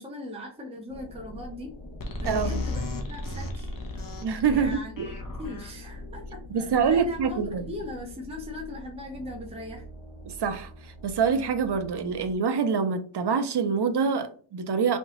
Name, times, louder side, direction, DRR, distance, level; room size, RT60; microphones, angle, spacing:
voice 1, 0.0-1.7 2.2-4.1 4.5-5.1 5.4-9.8, left 1 dB, 15° right, 0.7 m, -40 dB
sound 1, 0.9-12.4, left 1 dB, 75° left, 1.1 m, -43 dB
sound 2, 2.0-8.4, left 2 dB, 45° left, 1.0 m, -36 dB
voice 2, 2.2-2.6 4.2-5.1 6.5-7.7 10.3-15.0, right 6 dB, 55° right, 0.6 m, -26 dB
3.6 x 3.2 x 3.0 m
wide cardioid pair, 90°, 47 cm